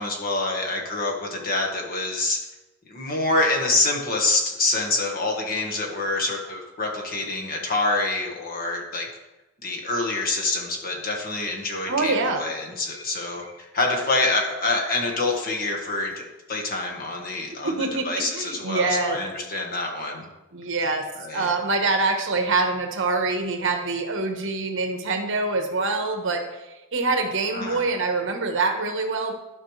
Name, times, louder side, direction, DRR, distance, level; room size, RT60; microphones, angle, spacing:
voice 1, 0.0-2.4 2.8-9.1 9.6-20.3 21.2-21.5 27.5-27.8, left 2 dB, 45° left, 0 dB, 1.6 m, -26 dB
voice 2, 11.9-12.4 17.6-19.2 20.5-21.0 21.3-26.4 26.9-29.3, right 3 dB, 65° right, 4 dB, 1.2 m, -25 dB
sound 1, 12.7-13.7 13.9-16.2, left 2 dB, 70° left, 1.3 m, -45 dB
12.5 x 5.6 x 3.3 m, 1.0 s
head